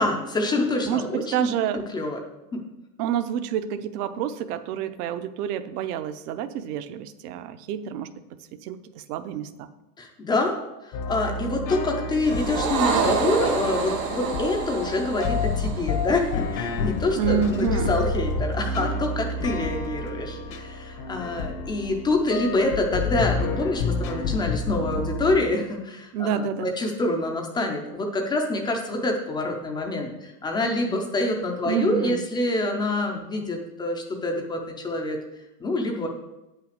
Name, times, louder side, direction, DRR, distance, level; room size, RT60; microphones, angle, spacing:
voice 1, 0.0-1.5 1.9-2.2 2.5-2.6 10.0-10.5 10.8-35.2 35.6-36.1, left 2 dB, 10° left, 2 dB, 0.3 m, -26 dB
voice 2, 0.9-1.8 3.0-8.1 8.6-9.7 17.2-18.0 26.1-26.7 31.7-32.2, right 8 dB, 65° right, 11 dB, 0.8 m, -28 dB
sound 1, 10.9-25.4, left 3 dB, 85° left, 1.6 m, -29 dB
sound 2, 12.2-16.8, right 5 dB, 85° right, 2.3 m, -28 dB
8.6 x 5.7 x 6.5 m, 0.98 s
supercardioid pair, 145°, 49 cm